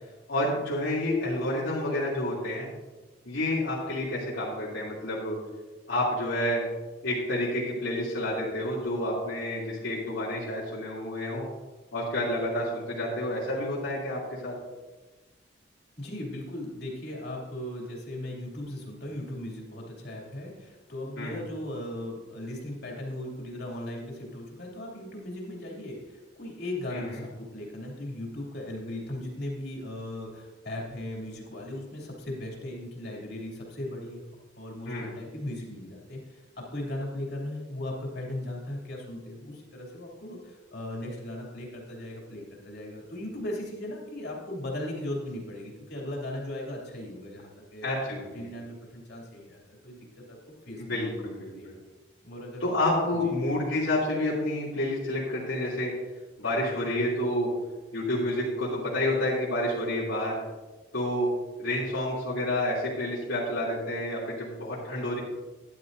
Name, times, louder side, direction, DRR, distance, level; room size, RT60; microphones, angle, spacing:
voice 1, 0.3-2.7 3.2-5.4 5.9-6.6 7.0-11.5 11.9-14.6 21.2-21.4 26.9-27.2 34.8-35.1 47.8-48.5 50.8-51.8 52.6-55.9 56.4-57.5 57.9-60.4 60.9-61.3 61.6-65.2, left 1 dB, 90° left, -8 dB, 3.0 m, -29 dB
voice 2, 16.0-34.3 34.6-47.9 48.3-50.4 50.6-51.3 51.6-51.7 52.2-52.7 53.2-53.3, left 1 dB, 55° left, -2 dB, 2.8 m, -38 dB
13.0 x 11.0 x 2.7 m, 1.2 s
head